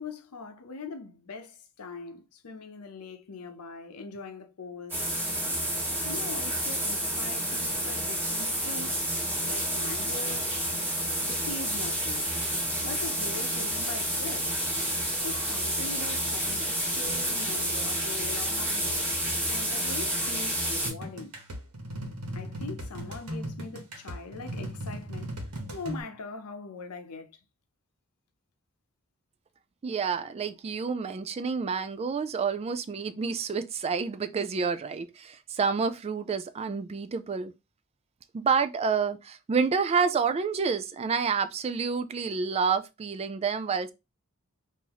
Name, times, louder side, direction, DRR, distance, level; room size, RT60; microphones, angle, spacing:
voice 1, 0.0-5.0 6.0-9.1 9.4-10.6 11.2-14.6 15.2-19.2 19.5-21.3 22.3-27.4, left 4 dB, 90° left, 0.7 m, -42 dB
sound 1, 4.9-20.9, right 1 dB, 10° right, 1.3 m, -29 dB
sound 2, 20.8-26.0, equal, 85° right, 1.1 m, -37 dB
voice 2, 29.8-37.5 38.3-43.9, right 5 dB, 30° right, 0.3 m, -29 dB
3.0 x 2.6 x 3.8 m
head